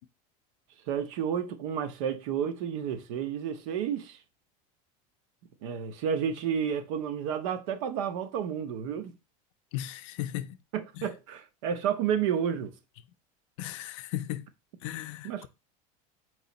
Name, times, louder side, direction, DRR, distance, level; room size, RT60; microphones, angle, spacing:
voice 1, 0.9-4.2 5.6-9.1 10.7-12.7 15.2-15.5, right 8 dB, 60° right, 0.8 m, -31 dB
voice 2, 9.7-10.6 11.0-11.1 13.6-14.5 14.8-15.5, left 13 dB, 60° left, 0.5 m, -36 dB
4.7 x 2.8 x 4.0 m
cardioid pair, 175°, 18 cm